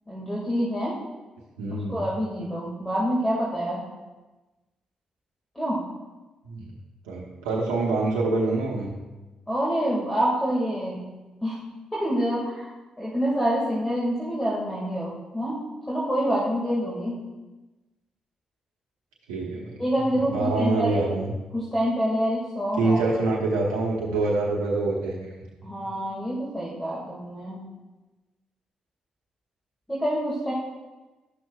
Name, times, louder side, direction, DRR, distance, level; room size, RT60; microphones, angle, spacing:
voice 1, 0.1-1.0 1.7-3.8 5.6-5.8 9.5-11.0 11.4-11.6 11.9-12.7 13.0-17.2 19.8-21.0 21.5-23.2 25.6-27.6 29.9-30.5, equal, 10° left, -5 dB, 2.0 m, -27 dB
voice 2, 1.6-2.0 6.4-6.7 7.1-8.9 19.3-19.8 20.3-21.3 22.8-25.3, right 2 dB, 90° right, -4 dB, 0.9 m, -25 dB
11.5 x 6.2 x 2.4 m, 1.1 s
hypercardioid pair, 45°, 3 cm